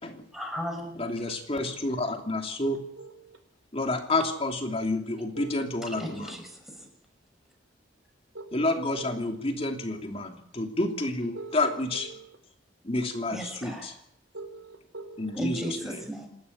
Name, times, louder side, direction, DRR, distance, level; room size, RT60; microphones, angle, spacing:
voice 1, 0.3-1.0 5.8-6.9 13.3-13.9 15.3-16.3, equal, ahead, 3 dB, 6.1 m, -36 dB
voice 2, 1.0-2.8 3.7-6.4 8.5-12.1 12.8-13.9 15.2-16.0, left 2 dB, 30° left, 4 dB, 3.0 m, -29 dB
voice 3, 3.0-3.4 5.4-5.5 5.9-6.0 8.3-8.6 8.9-9.1 11.3-11.6 14.3-15.3, right 3 dB, 90° right, 8 dB, 4.2 m, -42 dB
28.5 x 12.5 x 10.0 m, 0.69 s
head